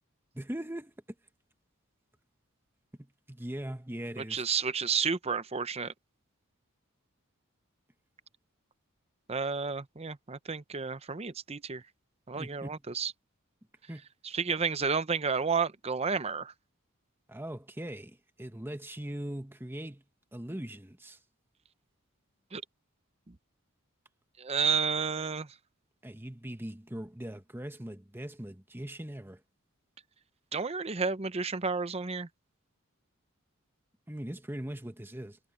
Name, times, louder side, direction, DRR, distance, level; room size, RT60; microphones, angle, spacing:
voice 1, 0.3-0.9 3.0-4.5 12.4-12.8 13.9-14.0 17.3-20.0 20.3-21.2 26.0-29.4 34.1-35.4, right 1 dB, 10° right, 1.2 m, -40 dB
voice 2, 4.2-5.9 9.3-11.8 12.3-13.1 14.2-16.5 22.5-22.6 24.4-25.5 30.5-32.3, right 5 dB, 30° right, 0.7 m, -31 dB
head